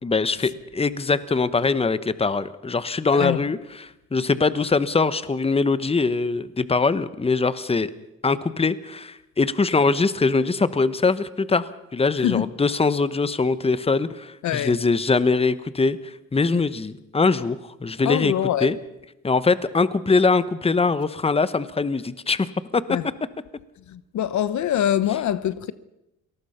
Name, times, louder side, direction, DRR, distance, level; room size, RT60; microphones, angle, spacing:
voice 1, 0.0-3.6 4.1-7.9 8.2-18.3 18.6-18.8 19.2-22.8, left 4 dB, 20° left, 1.1 m, -22 dB
voice 2, 3.1-3.4 12.2-12.5 14.4-14.8 16.5-16.6 18.0-18.7 22.9-23.0 23.9-25.7, left 11 dB, 70° left, 1.0 m, -24 dB
27.5 x 19.0 x 5.8 m
cardioid pair, 90°, 30 cm